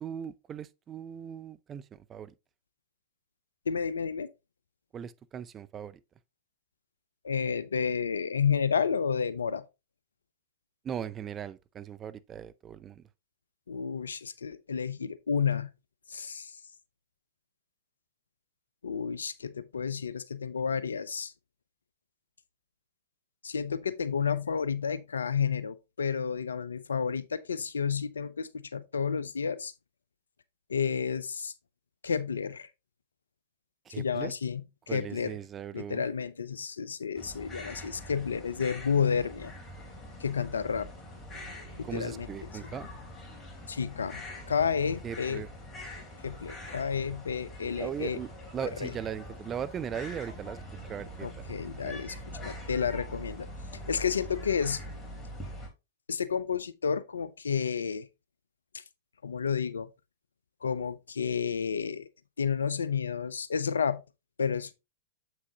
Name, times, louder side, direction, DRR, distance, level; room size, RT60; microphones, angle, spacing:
voice 1, 0.0-2.3 4.9-6.0 10.8-13.0 33.9-34.3 34.9-36.1 41.8-42.9 45.0-45.5 47.7-50.6 50.9-51.4 51.8-52.0, right 8 dB, 25° right, 0.5 m, -39 dB
voice 2, 3.7-4.3 7.2-9.6 13.7-15.7 16.1-16.6 18.8-21.3 23.4-29.7 30.7-31.5 32.0-32.7 33.9-34.6 34.9-35.4 35.7-39.5 40.2-40.9 41.8-42.3 43.7-45.4 46.2-48.2 48.8-48.9 51.2-52.2 52.4-53.5 53.9-54.8 56.1-58.1 58.7-58.8 59.2-59.9 60.6-62.1 62.4-64.0 64.4-64.7, left 6 dB, 80° left, 0.6 m, -31 dB
sound 1, 37.1-55.7, equal, 15° left, 3.0 m, -44 dB
7.5 x 6.1 x 2.8 m
hypercardioid pair, 105°, 0 cm